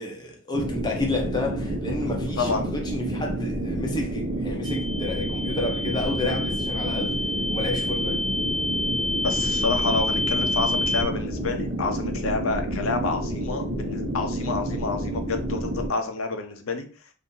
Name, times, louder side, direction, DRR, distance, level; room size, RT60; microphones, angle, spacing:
voice 1, 0.0-7.2 7.5-8.2, left 2 dB, 20° left, 0.8 m, -31 dB
sound 1, 0.5-15.9, right 1 dB, 60° right, 0.9 m, -29 dB
sound 2, 4.6-11.0, left 2 dB, 80° right, 1.2 m, -28 dB
voice 2, 9.2-16.8, left 4 dB, 80° left, 0.7 m, -28 dB
2.8 x 2.6 x 3.8 m
head